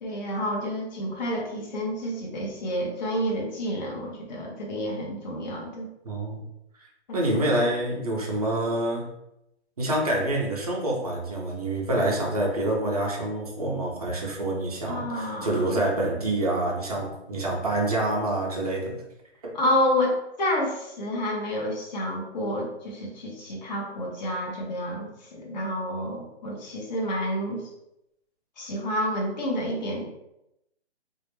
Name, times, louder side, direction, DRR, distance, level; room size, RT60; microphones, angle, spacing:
voice 1, 0.0-5.9 7.1-7.5 14.9-15.8 19.5-27.7 28.6-30.1, equal, 40° left, -2 dB, 0.5 m, -29 dB
voice 2, 6.0-6.5 7.1-9.1 9.8-19.0 19.4-19.5, right 1 dB, 35° right, -1 dB, 0.5 m, -27 dB
2.1 x 2.0 x 2.9 m, 0.84 s
hypercardioid pair, 160°, 34 cm